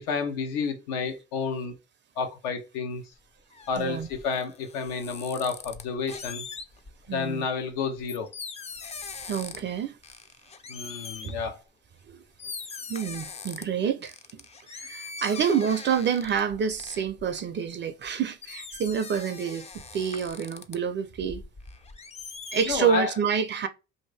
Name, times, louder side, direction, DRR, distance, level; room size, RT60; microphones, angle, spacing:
voice 1, 0.0-1.7 2.2-3.0 3.7-6.4 7.1-8.3 10.7-11.6 22.7-23.1, left 5 dB, 80° left, 1.0 m, -30 dB
sound 1, 3.2-7.1 7.6-9.8 10.0-11.4 12.0-12.1 12.4-13.6 14.0-18.1 18.4-20.8 21.2-22.8, left 5 dB, 20° left, 0.4 m, -42 dB
voice 2, 3.8-4.1 7.1-7.5 9.3-10.0 11.2-11.4 12.1-12.2 12.9-14.1 14.7-21.4 22.5-23.7, right 7 dB, 35° right, 0.5 m, -28 dB
2.7 x 2.6 x 3.2 m
supercardioid pair, 80°, 32 cm